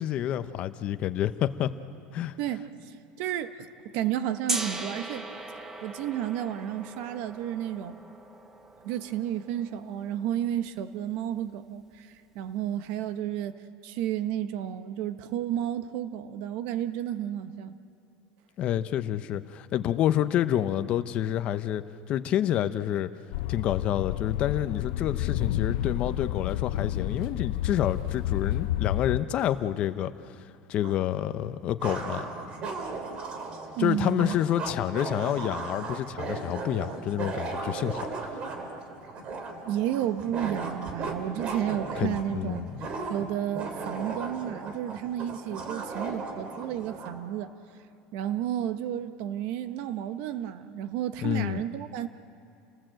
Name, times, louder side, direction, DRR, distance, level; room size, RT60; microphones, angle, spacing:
voice 1, 0.0-1.7 2.1-2.4 18.6-23.1 23.5-30.3 30.7-32.3 33.8-38.1 42.0-42.7 51.2-51.6, left 11 dB, 40° left, 12 dB, 0.8 m, -28 dB
voice 2, 2.4-3.7 3.9-5.2 5.8-8.0 8.8-13.5 13.8-17.7 33.8-34.3 39.7-42.6 43.1-47.5 48.1-52.1, right 11 dB, 60° right, 11 dB, 1.1 m, -32 dB
Gong, 4.5-10.4, right 2 dB, 10° right, 1.1 m, -38 dB
sound 1, 23.3-29.2, left 13 dB, 85° left, 0.7 m, -30 dB
sound 2, 30.8-30.9 31.8-47.2, right 3 dB, 35° right, 2.5 m, -36 dB
29.5 x 18.5 x 7.8 m, 2.5 s
cardioid pair, 165°, 3 cm